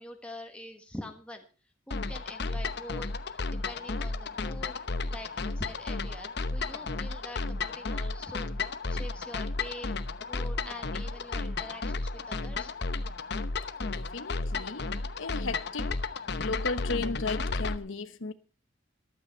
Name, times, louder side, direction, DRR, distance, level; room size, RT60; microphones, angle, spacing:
voice 1, 0.0-1.4 1.9-4.7 5.1-8.5 8.9-9.9 10.3-12.7, left 1 dB, 5° left, 1.5 m, -44 dB
sound 1, 1.9-17.8, left 3 dB, 55° left, 0.9 m, -33 dB
voice 2, 13.9-14.9 15.2-16.0 16.4-18.3, left 3 dB, 85° left, 1.1 m, -35 dB
14.5 x 12.5 x 4.4 m
head